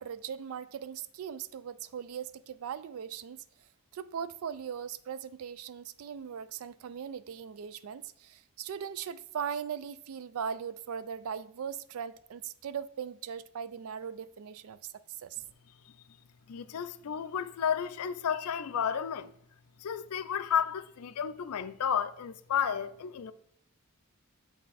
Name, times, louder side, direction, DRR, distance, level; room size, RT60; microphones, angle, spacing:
voice 1, 0.0-3.4 3.9-14.8 15.2-15.4, right 7 dB, 65° right, 0.3 m, -39 dB
voice 2, 16.5-19.3 19.8-23.3, left 8 dB, 75° left, 0.4 m, -32 dB
8.3 x 3.3 x 4.1 m
head